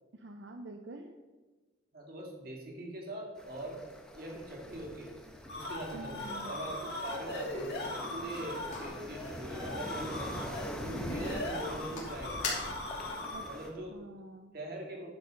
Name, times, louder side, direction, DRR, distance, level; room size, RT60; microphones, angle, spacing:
voice 1, 0.1-1.1 5.9-6.5 13.3-13.4 13.9-14.5, right 2 dB, 80° right, 4 dB, 0.7 m, -47 dB
voice 2, 1.9-3.8 4.1-5.2 5.6-10.3 10.8-12.6 13.4-14.0 14.5-15.1, right 1 dB, 55° right, 0 dB, 2.1 m, -42 dB
sound 1, 3.4-13.7, equal, 5° left, 1.0 m, -44 dB
sound 2, 5.4-13.7, left 1 dB, 60° left, 2.3 m, -40 dB
sound 3, 8.0-13.2, left 3 dB, 40° left, 2.6 m, -44 dB
10.5 x 5.3 x 5.8 m, 1.3 s
head